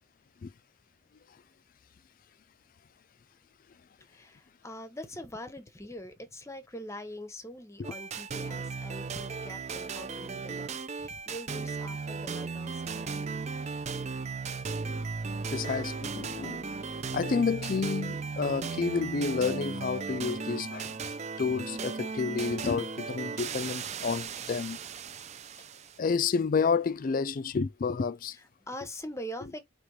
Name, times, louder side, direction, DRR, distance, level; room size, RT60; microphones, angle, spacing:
voice 1, 4.0-13.2 28.3-29.6, equal, 15° left, 0.8 m, -43 dB
sound 1, 7.8-26.0, right 5 dB, 35° right, 0.4 m, -36 dB
voice 2, 15.5-16.7 17.1-21.1 21.4-24.8 26.0-28.4, left 5 dB, 40° left, 0.4 m, -30 dB
5.0 x 3.1 x 3.0 m
head